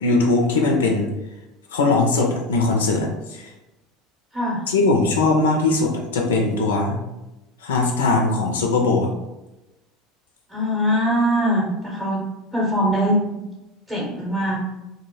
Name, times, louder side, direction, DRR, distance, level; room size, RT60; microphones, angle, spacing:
voice 1, 0.0-1.1 1.7-3.5 4.7-7.0 7.6-9.1, left 3 dB, 80° left, 1 dB, 0.3 m, -20 dB
voice 2, 4.3-4.6 10.5-12.2 12.5-13.5 13.9-14.6, equal, 5° right, -5 dB, 0.7 m, -22 dB
2.1 x 2.0 x 2.9 m, 1.0 s
hypercardioid pair, 70°, 0 cm